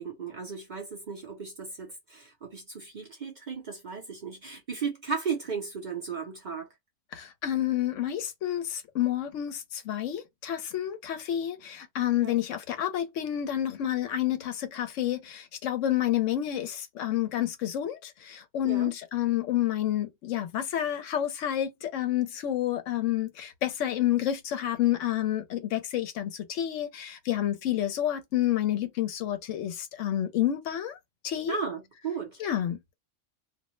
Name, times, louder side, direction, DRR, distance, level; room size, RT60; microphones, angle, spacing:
voice 1, 0.0-6.7 12.2-12.4 18.6-18.9 31.5-32.4, right 5 dB, 50° right, 0.6 m, -35 dB
voice 2, 7.1-31.0 31.2-31.5 32.4-33.0, left 12 dB, 80° left, 0.9 m, -29 dB
2.4 x 2.0 x 3.0 m
omnidirectional pair, 1.3 m